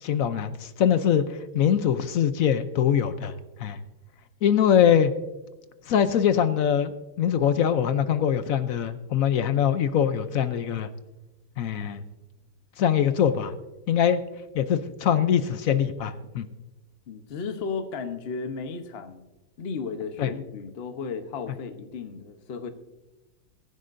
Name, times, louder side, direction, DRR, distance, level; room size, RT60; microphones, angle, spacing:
voice 1, 0.0-3.3 3.6-3.8 4.4-5.1 5.9-10.9 11.6-12.0 12.8-13.5 13.9-14.2 14.5-16.5 20.2-20.3, left 9 dB, 70° left, 11 dB, 0.8 m, -23 dB
voice 2, 17.1-19.2 19.6-22.7, left 5 dB, 45° left, 7 dB, 0.9 m, -34 dB
23.0 x 10.5 x 2.6 m, 1.0 s
omnidirectional pair, 2.1 m